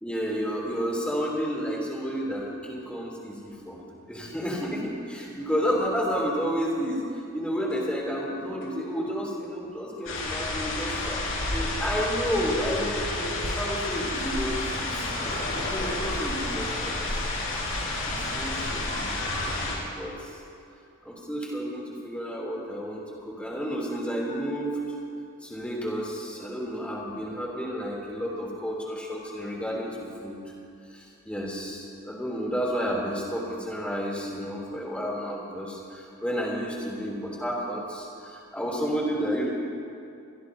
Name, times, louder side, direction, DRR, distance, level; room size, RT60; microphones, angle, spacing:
voice 1, 0.0-3.8 4.1-11.2 11.5-14.6 14.9-17.1 18.0-20.4 21.0-24.8 25.4-30.5 30.9-39.5, equal, 5° left, -4 dB, 3.1 m, -31 dB
sound 1, 6.1-6.7 7.1-9.5 11.0-11.2 14.6-17.2 19.4-19.5, left 1 dB, 40° left, 3.5 m, -42 dB
sound 2, 10.1-19.8, left 2 dB, 65° left, 4.2 m, -30 dB
sound 3, 13.9-19.6, right 1 dB, 55° right, 2.6 m, -44 dB
23.5 x 22.0 x 2.8 m, 2.5 s
head